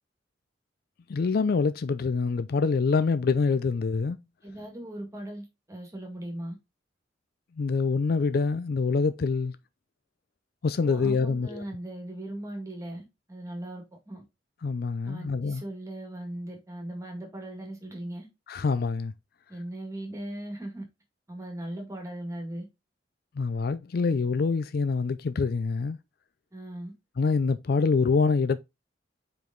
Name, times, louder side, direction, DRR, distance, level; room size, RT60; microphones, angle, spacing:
voice 1, 1.1-4.2 7.6-9.5 10.6-11.6 14.6-15.6 18.5-19.1 23.4-26.0 27.2-28.6, left 4 dB, 55° left, 0.4 m, -25 dB
voice 2, 4.4-6.6 10.8-14.2 15.0-18.3 19.5-20.9 21.3-22.7 26.5-26.9, right 1 dB, 20° right, 2.0 m, -38 dB
5.2 x 4.8 x 3.7 m
head